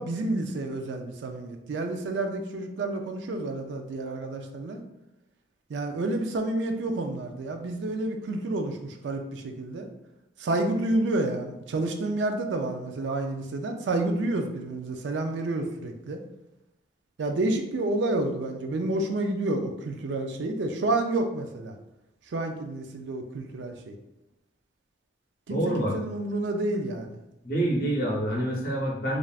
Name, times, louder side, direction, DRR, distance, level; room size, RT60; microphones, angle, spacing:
voice 1, 0.0-4.8 5.7-9.9 10.4-16.2 17.2-21.7 22.3-23.9 25.5-27.2, right 2 dB, 85° right, 5 dB, 0.4 m, -29 dB
voice 2, 25.5-25.9 27.4-29.2, right 1 dB, 55° left, -3 dB, 0.8 m, -27 dB
3.3 x 2.5 x 2.3 m, 0.88 s
head